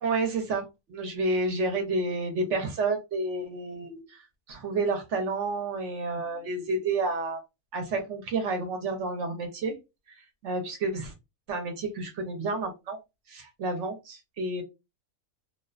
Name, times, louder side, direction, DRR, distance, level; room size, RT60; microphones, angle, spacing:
voice 1, 0.0-4.2 4.5-7.4 7.7-9.8 10.4-11.1 11.5-13.0 13.3-14.6, right 3 dB, 60° right, 5 dB, 0.9 m, -30 dB
2.4 x 2.2 x 2.3 m, 0.24 s
omnidirectional pair, 1.5 m